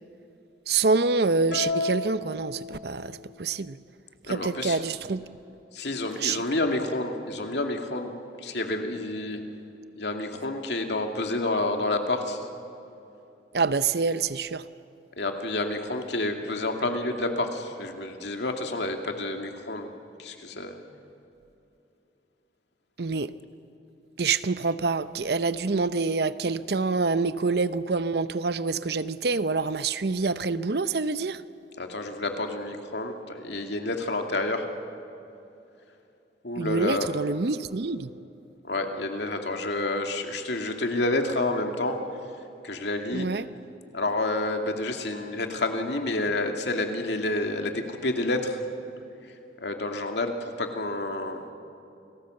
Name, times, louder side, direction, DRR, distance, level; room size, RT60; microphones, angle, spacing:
voice 1, 0.7-3.8 4.3-5.2 6.2-6.4 13.5-14.7 23.0-23.3 24.2-31.4 36.6-38.1 43.1-43.5, right 4 dB, 60° right, 0.7 m, -26 dB
sound 1, 1.5-3.3, left 3 dB, 85° left, 2.7 m, -32 dB
voice 2, 4.3-4.8 5.7-8.1 8.4-9.4 9.9-12.5 15.2-19.9 20.2-20.8 31.8-34.7 36.4-37.1 38.6-42.0 42.6-43.3 43.9-48.6 49.6-51.4, left 2 dB, 70° left, 2.4 m, -29 dB
29.0 x 19.5 x 7.8 m
head